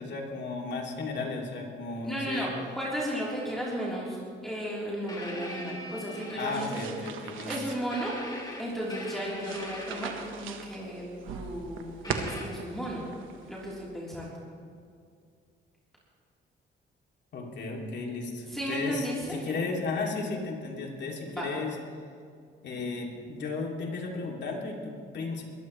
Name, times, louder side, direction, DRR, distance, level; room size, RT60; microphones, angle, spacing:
voice 1, 0.0-2.5 6.4-7.5 17.3-21.8 22.6-25.4, left 3 dB, 60° left, 0 dB, 2.7 m, -34 dB
voice 2, 2.0-4.2 4.4-6.8 7.5-8.1 8.6-11.0 11.3-13.0 13.5-14.3 18.5-19.3 21.3-21.5, equal, ahead, -7 dB, 3.6 m, -34 dB
sound 1, 5.1-7.0 7.9-10.5 12.0-12.4, left 1 dB, 20° left, 2.7 m, -41 dB
sound 2, 6.4-13.9, right 6 dB, 90° right, 1.2 m, -41 dB
21.5 x 14.0 x 3.2 m, 2.2 s
cardioid pair, 90°, 20 cm